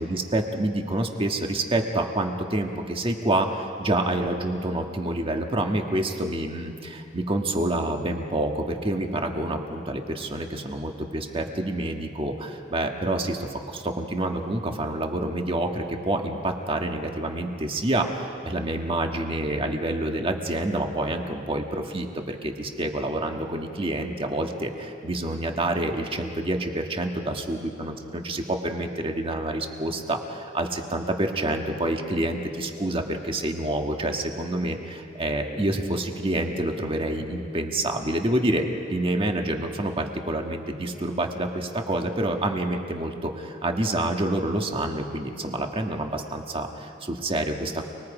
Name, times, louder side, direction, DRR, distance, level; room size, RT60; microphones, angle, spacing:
voice 1, 0.0-47.8, right 1 dB, 30° right, 3 dB, 1.5 m, -28 dB
30.0 x 21.0 x 5.0 m, 2.8 s
head